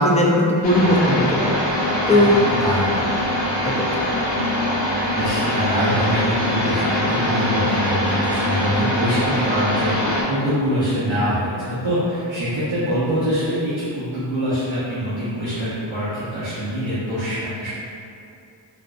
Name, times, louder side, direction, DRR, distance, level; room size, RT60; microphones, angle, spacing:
voice 1, 0.0-1.5 2.1-2.3 3.6-4.0, left 1 dB, 15° left, -3 dB, 0.3 m, -18 dB
sound 1, 0.6-10.2, left 1 dB, 70° left, 1.0 m, -22 dB
voice 2, 2.5-3.2 5.1-17.7, equal, 75° right, -11 dB, 0.9 m, -24 dB
3.7 x 2.6 x 2.2 m, 2.4 s
wide cardioid pair, 85°, 46 cm